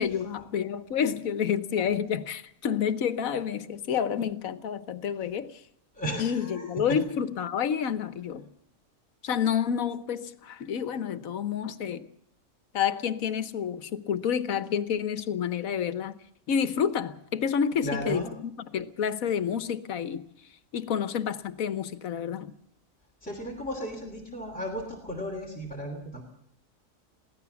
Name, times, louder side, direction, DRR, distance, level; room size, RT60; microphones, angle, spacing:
voice 1, 0.0-5.6 6.2-8.4 9.2-12.1 12.7-16.2 16.5-20.2 20.7-22.5, left 8 dB, 90° left, 13 dB, 1.4 m, -29 dB
voice 2, 6.0-7.0 17.8-18.3 23.2-26.2, equal, 5° left, 0 dB, 3.1 m, -35 dB
22.5 x 16.5 x 7.1 m, 0.70 s
omnidirectional pair, 1.4 m